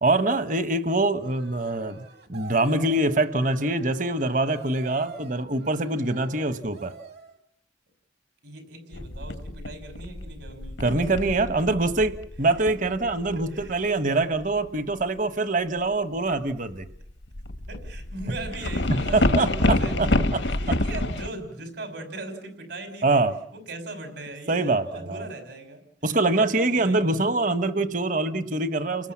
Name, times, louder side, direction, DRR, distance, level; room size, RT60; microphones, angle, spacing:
voice 1, 0.0-6.9 10.8-16.9 19.1-20.4 20.7-20.8 23.0-23.3 24.5-25.2 26.0-29.1, right 2 dB, 45° right, 12 dB, 1.1 m, -24 dB
sound 1, 1.2-7.4, right 5 dB, 60° right, 1.8 m, -45 dB
voice 2, 8.4-11.7 12.6-12.7 13.3-13.7 17.7-23.2 23.5-25.8 26.5-27.2 29.0-29.1, right 2 dB, 80° right, 6 dB, 5.9 m, -39 dB
sound 2, 8.9-13.8 14.4-14.6 16.8-21.3, left 1 dB, 85° left, 1.4 m, -27 dB
30.0 x 19.5 x 7.4 m, 0.72 s
head